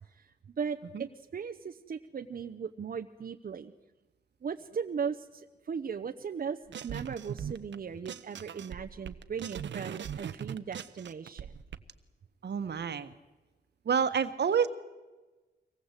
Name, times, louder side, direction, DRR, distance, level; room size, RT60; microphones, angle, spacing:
voice 1, 0.6-3.7 4.4-6.6 6.8-11.5, right 6 dB, 55° right, 5 dB, 0.8 m, -37 dB
sound 1, 6.7-7.7 8.0-11.8, right 8 dB, 85° right, 0.9 m, -40 dB
voice 2, 12.4-13.1 13.8-14.7, right 7 dB, 70° right, 10 dB, 1.4 m, -28 dB
24.5 x 19.0 x 8.2 m, 1.2 s
wide cardioid pair, 120°, 18 cm